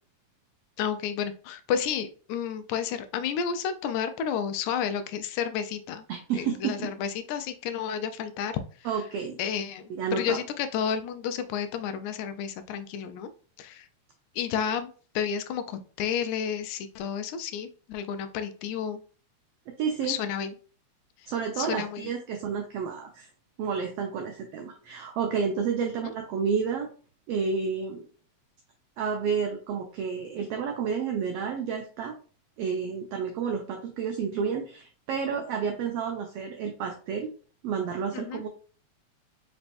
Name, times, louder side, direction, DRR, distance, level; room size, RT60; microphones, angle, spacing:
voice 1, 0.8-6.1 6.3-8.5 9.4-13.3 13.6-13.9 14.4-14.9 15.2-19.0 20.0-20.5 21.6-22.0 26.0-26.1 38.1-38.4, left 8 dB, 85° left, 9 dB, 1.9 m, -31 dB
voice 2, 6.1-6.9 8.8-9.4 9.9-10.4 19.8-20.2 21.3-23.3 23.6-26.9 27.3-28.0 29.0-32.2 32.6-37.3 37.6-38.5, right 6 dB, 90° right, 3 dB, 1.3 m, -30 dB
5.1 x 3.4 x 2.5 m, 0.40 s
omnidirectional pair, 3.3 m